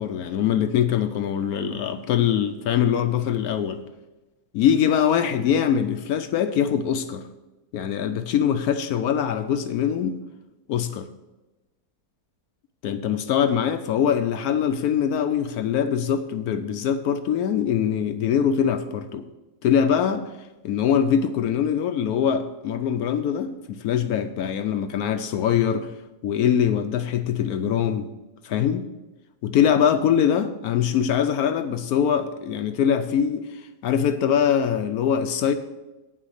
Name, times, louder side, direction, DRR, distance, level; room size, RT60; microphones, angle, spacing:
voice 1, 0.0-3.8 4.5-7.3 7.7-10.2 10.7-11.1 12.8-19.3 19.6-20.3 20.6-25.9 26.2-28.1 28.4-28.9 29.4-35.5, left 8 dB, 70° left, 9 dB, 1.0 m, -23 dB
9.1 x 5.7 x 6.4 m, 1.1 s
omnidirectional pair, 1.8 m